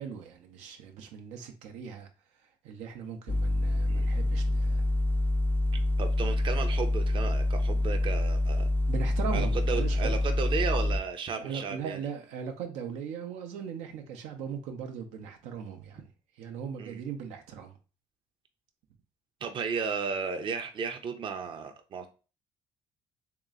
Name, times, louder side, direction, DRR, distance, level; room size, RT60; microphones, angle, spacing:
voice 1, 0.0-2.1 2.6-4.9 8.9-10.1 11.4-16.1 16.4-17.8, right 7 dB, 90° right, 0.7 m, -39 dB
sound 1, 3.3-11.0, left 1 dB, 15° left, 0.4 m, -26 dB
voice 2, 5.7-8.7 9.3-12.0 16.8-17.0 19.4-22.1, right 5 dB, 45° right, 0.6 m, -34 dB
3.2 x 2.9 x 3.7 m
cardioid pair, 95°, 11 cm